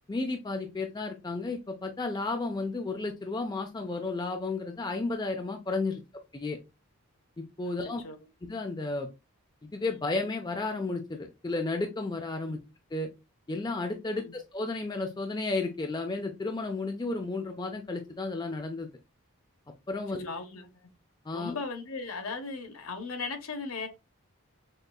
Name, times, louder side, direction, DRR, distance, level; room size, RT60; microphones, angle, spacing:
voice 1, 0.1-6.0 6.3-6.6 7.4-8.0 8.4-9.1 9.6-12.6 12.9-13.1 13.5-18.9 19.9-20.3 21.3-21.5, left 3 dB, 20° left, 0.4 m, -33 dB
voice 2, 20.1-20.7 21.3-23.9, left 4 dB, 70° left, 0.8 m, -37 dB
6.4 x 2.4 x 2.3 m
head